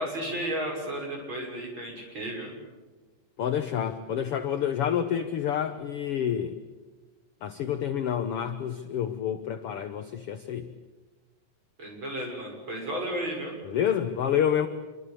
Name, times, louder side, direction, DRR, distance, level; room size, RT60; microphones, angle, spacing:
voice 1, 0.0-2.5 11.8-13.5, right 1 dB, 35° right, 1 dB, 7.1 m, -33 dB
voice 2, 3.4-6.6 7.4-10.7 13.6-14.7, left 9 dB, 70° left, 9 dB, 1.4 m, -28 dB
27.5 x 24.0 x 8.5 m, 1.3 s
omnidirectional pair, 4.0 m